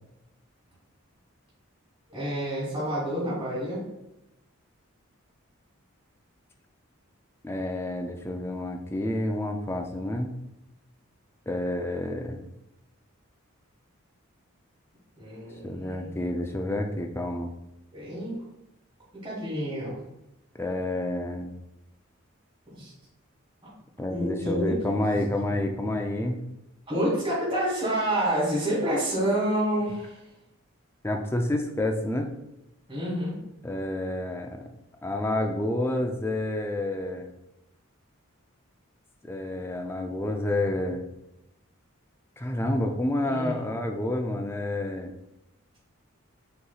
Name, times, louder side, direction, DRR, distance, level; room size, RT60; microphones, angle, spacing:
voice 1, 2.1-3.8 15.2-16.1 17.9-18.4 19.2-20.0 22.7-22.9 24.1-24.9 26.9-30.2 32.9-33.3 43.2-43.6, right 1 dB, 25° right, -8 dB, 1.4 m, -28 dB
voice 2, 7.4-10.3 11.5-12.4 15.6-17.5 19.9-20.0 20.6-21.5 24.0-26.4 31.0-32.3 33.6-34.7 35.0-37.3 39.2-41.0 42.4-45.1, left 1 dB, 10° left, 3 dB, 0.3 m, -29 dB
6.5 x 3.0 x 2.3 m, 0.91 s
head